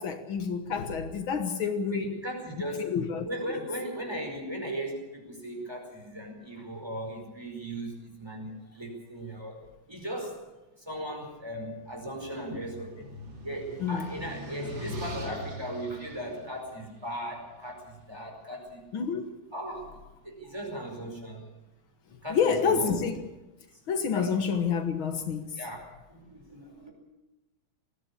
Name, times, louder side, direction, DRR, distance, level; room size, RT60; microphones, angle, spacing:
voice 1, 0.0-2.2 2.8-3.6 12.5-12.6 13.8-14.1 18.9-19.3 22.3-23.2 23.9-25.5, left 6 dB, 75° left, 2.2 m, -28 dB
voice 2, 1.9-2.9 3.2-9.6 9.9-10.4 10.9-13.0 13.4-18.8 19.5-20.0 20.2-21.5 22.2-22.9 24.1-24.3 25.6-26.9, equal, 10° right, 5.0 m, -37 dB
sound 1, 11.6-17.8, equal, 65° right, 3.6 m, -42 dB
20.5 x 15.5 x 8.5 m
omnidirectional pair, 2.3 m